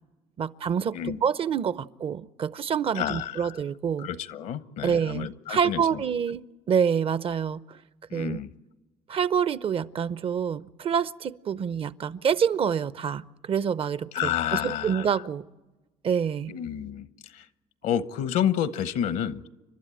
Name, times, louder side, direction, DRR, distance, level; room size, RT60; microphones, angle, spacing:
voice 1, 0.4-4.1 4.8-7.8 8.1-8.4 9.1-15.4 16.0-16.5, right 7 dB, 45° right, 0.7 m, -27 dB
voice 2, 2.9-3.6 4.0-6.0 8.1-8.5 14.1-15.2 16.5-17.5 17.8-19.5, left 10 dB, 70° left, 1.0 m, -30 dB
30.0 x 12.5 x 8.9 m
supercardioid pair, 80°, 13 cm